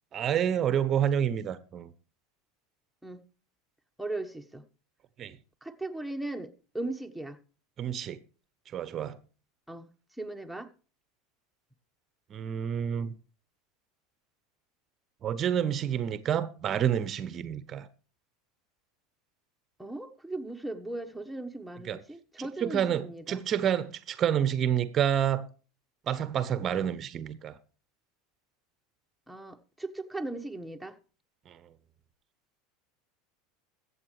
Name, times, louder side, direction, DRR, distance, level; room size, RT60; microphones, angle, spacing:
voice 1, 0.1-1.9 5.2-5.4 7.8-8.2 8.7-9.2 12.3-13.1 15.2-17.9 21.8-22.0 22.6-25.4 26.1-27.6 31.5-31.6, right 9 dB, 35° right, 0.9 m, -28 dB
voice 2, 4.0-4.6 5.6-7.4 9.7-9.9 10.2-10.7 19.8-23.4 29.3-31.0, right 2 dB, ahead, 1.2 m, -38 dB
22.0 x 8.1 x 3.2 m
figure-of-eight pair, 80°, 0 cm